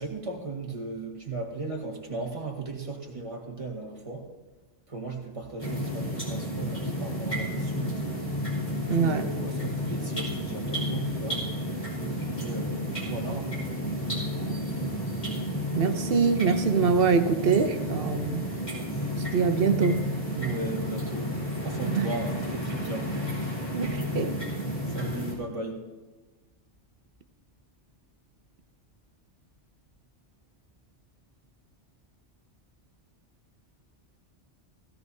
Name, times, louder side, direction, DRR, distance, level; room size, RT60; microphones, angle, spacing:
voice 1, 0.0-4.3 4.9-8.1 8.8-11.4 12.0-13.6 20.3-21.3 21.6-23.6 24.9-25.8, right 3 dB, 30° right, 0 dB, 1.7 m, -36 dB
sound 1, 5.6-25.3, equal, 40° left, 3.7 m, -32 dB
voice 2, 8.9-9.3 14.8-14.9 15.7-18.4 19.2-20.1 21.8-22.1 23.7-24.4, right 5 dB, 60° right, 8 dB, 1.0 m, -24 dB
16.5 x 16.0 x 2.7 m, 1.2 s
omnidirectional pair, 1.2 m